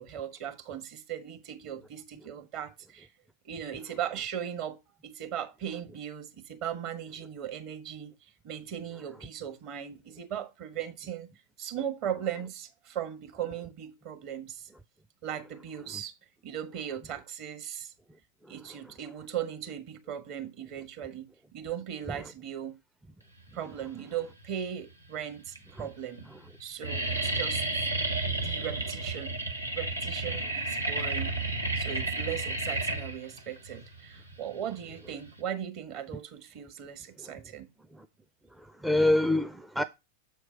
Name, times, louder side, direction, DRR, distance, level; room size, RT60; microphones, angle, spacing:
voice 1, 0.0-3.1 3.4-11.3 11.6-14.7 15.2-16.2 16.4-17.9 18.5-22.8 23.5-26.3 26.6-27.9 28.4-29.4 29.7-31.3 31.7-37.7, right 9 dB, 45° right, 1.5 m, -38 dB
sound 1, 24.2-24.8 25.5-25.6 25.8-26.2 26.5-35.4, right 2 dB, 90° right, 1.3 m, -32 dB
voice 2, 38.6-39.8, left 1 dB, 5° right, 0.5 m, -27 dB
7.8 x 4.6 x 5.1 m
figure-of-eight pair, 90°, 0 cm